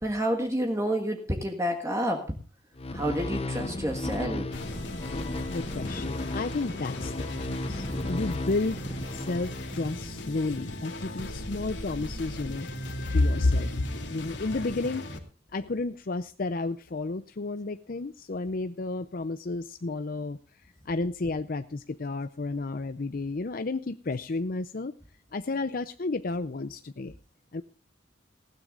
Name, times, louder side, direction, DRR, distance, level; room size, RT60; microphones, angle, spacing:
voice 1, 0.0-2.4 2.9-4.6, equal, 15° right, 3 dB, 1.6 m, -29 dB
sound 1, 2.8-10.2, left 2 dB, 35° left, 0.9 m, -35 dB
sound 2, 4.5-15.2, left 1 dB, 80° left, 2.8 m, -38 dB
voice 2, 5.5-8.8 9.1-12.7 13.1-15.1 15.5-20.4 20.9-24.9 25.3-27.1 27.5-27.6, left 3 dB, 50° left, 11 dB, 0.6 m, -31 dB
19.5 x 16.0 x 2.5 m, 0.33 s
head